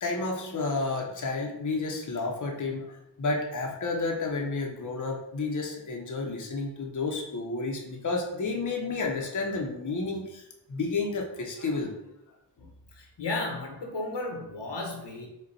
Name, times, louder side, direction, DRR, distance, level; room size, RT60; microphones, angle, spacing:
voice 1, 0.0-11.9, left 3 dB, 45° left, 1 dB, 0.7 m, -31 dB
voice 2, 12.9-15.3, left 2 dB, 90° left, 1 dB, 1.0 m, -34 dB
5.1 x 2.2 x 4.1 m, 0.85 s
wide cardioid pair, 95°, 42 cm